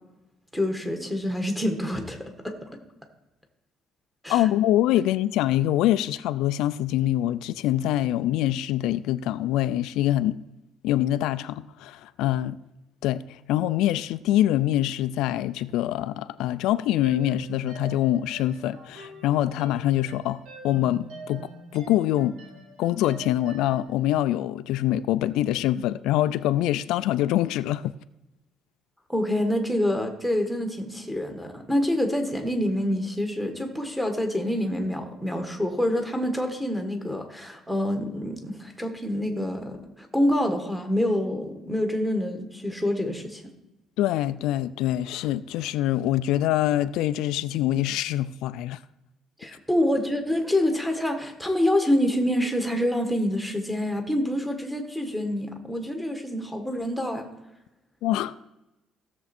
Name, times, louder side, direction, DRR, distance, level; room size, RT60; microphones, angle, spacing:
voice 1, 0.5-2.7 4.2-4.4 29.1-43.4 49.4-57.2, left 1 dB, ahead, 1.5 m, -26 dB
voice 2, 4.3-10.4 10.8-12.6 13.0-22.4 22.8-27.9 44.0-48.8 58.0-58.3, left 13 dB, 85° left, 0.4 m, -25 dB
sound 1, 17.0-23.9, right 3 dB, 75° right, 3.2 m, -44 dB
16.0 x 7.0 x 4.3 m
cardioid pair, 160°, 0 cm